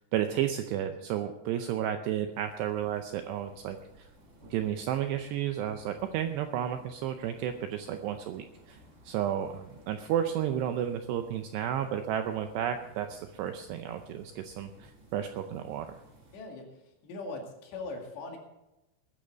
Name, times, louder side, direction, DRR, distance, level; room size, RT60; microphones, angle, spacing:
voice 1, 0.0-4.1 4.5-8.8 9.1-16.0, right 10 dB, 80° right, 7 dB, 2.5 m, -32 dB
sound 1, 2.3-16.4, right 1 dB, 25° right, 4.4 m, -57 dB
voice 2, 16.3-16.7 17.0-18.4, left 3 dB, 65° left, 1 dB, 4.3 m, -40 dB
21.0 x 10.0 x 4.0 m, 0.95 s
omnidirectional pair, 5.6 m